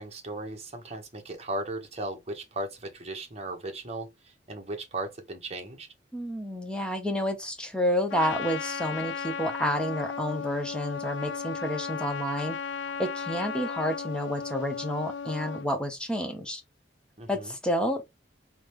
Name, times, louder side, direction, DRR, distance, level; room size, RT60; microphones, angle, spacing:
voice 1, 0.0-4.1 4.5-5.9 17.2-17.5, right 2 dB, 35° right, 1.4 m, -36 dB
voice 2, 6.1-12.6 13.0-16.6 17.3-18.1, equal, 5° left, 1.1 m, -30 dB
Trumpet, 8.1-15.7, left 6 dB, 80° left, 0.4 m, -35 dB
3.9 x 3.3 x 3.2 m
head